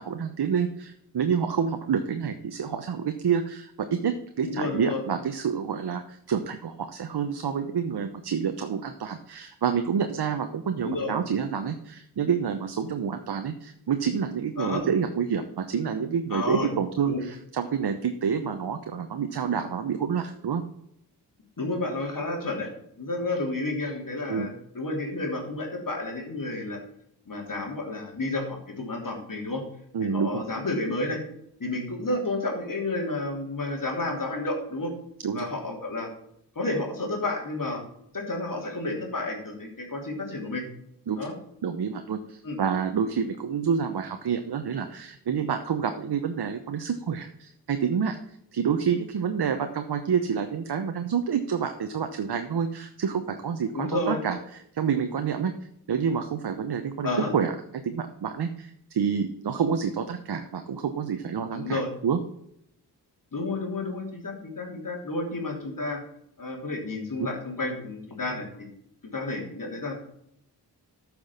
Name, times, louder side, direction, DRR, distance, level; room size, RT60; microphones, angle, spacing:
voice 1, 0.0-20.6 24.3-24.5 29.9-30.4 35.2-35.5 41.1-41.2 41.6-48.2 48.5-54.4 54.7-55.5 55.9-62.2, right 7 dB, 65° right, 7 dB, 1.0 m, -28 dB
voice 2, 4.4-5.0 10.8-11.1 14.6-14.8 16.3-16.7 17.0-17.2 21.6-22.7 23.0-26.8 27.3-29.6 30.0-31.2 31.6-34.9 35.3-36.1 36.5-37.8 38.1-40.6 41.2-41.3 42.4-42.6 53.7-54.2 57.0-57.3 61.5-61.9 63.3-66.0 66.4-68.7 69.1-69.9, left 2 dB, 50° left, 1 dB, 3.3 m, -31 dB
8.8 x 6.2 x 7.2 m, 0.72 s
cardioid pair, 60°, 41 cm